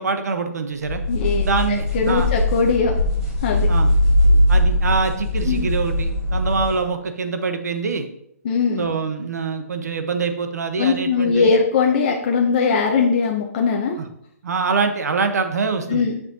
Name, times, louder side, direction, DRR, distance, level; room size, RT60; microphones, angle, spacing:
voice 1, 0.0-1.0 1.4-2.3 3.7-3.9 4.5-8.1 8.8-11.6 14.0-14.1 14.4-16.1, right 4 dB, 80° right, 8 dB, 0.9 m, -24 dB
sound 1, 0.9-6.9, left 1 dB, 10° right, 1.8 m, -20 dB
voice 2, 1.1-1.5 1.9-2.9 3.4-3.7 4.3-4.4 5.4-5.7 8.4-8.9 10.8-14.0 15.9-16.2, left 5 dB, 35° left, 1 dB, 0.6 m, -20 dB
7.7 x 6.0 x 2.7 m, 0.72 s
hypercardioid pair, 170°, 9 cm